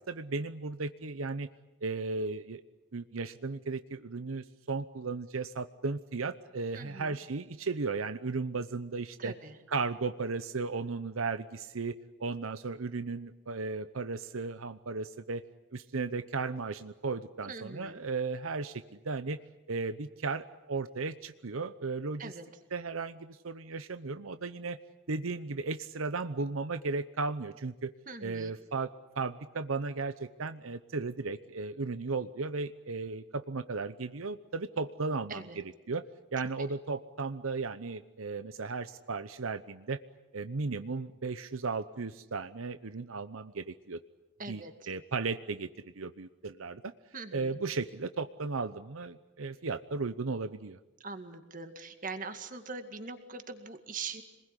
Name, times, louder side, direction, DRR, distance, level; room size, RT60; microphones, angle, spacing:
voice 1, 0.1-1.5 1.8-2.6 2.9-9.3 9.7-15.4 15.7-19.4 19.7-22.3 22.7-24.8 25.1-27.9 28.2-28.9 29.1-36.0 36.3-40.0 40.3-44.0 44.5-44.6 44.9-45.7 46.0-46.9 47.3-50.8, right 4 dB, 85° right, 11 dB, 0.9 m, -35 dB
voice 2, 6.7-7.2 9.2-9.6 17.5-18.0 22.2-22.5 28.1-28.6 35.3-35.6 36.6-36.7 44.4-44.9 47.1-47.5 51.0-54.2, right 4 dB, 40° right, 7 dB, 2.1 m, -42 dB
27.0 x 21.0 x 9.9 m, 1.1 s
head